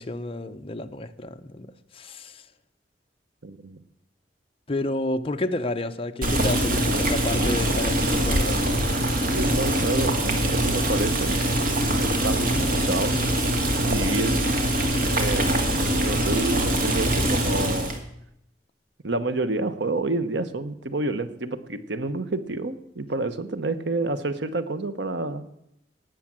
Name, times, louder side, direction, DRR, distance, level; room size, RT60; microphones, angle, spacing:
voice 1, 0.0-2.5 4.7-8.7, left 2 dB, 30° left, 0.8 m, -30 dB
voice 2, 3.4-3.8 9.3-11.4 11.9-13.2 13.8-14.4 15.0-18.0 19.0-25.4, right 2 dB, 70° right, 1.1 m, -29 dB
Boiling, 6.2-18.0, right 1 dB, 55° right, 2.2 m, -23 dB
18.0 x 7.4 x 7.4 m
head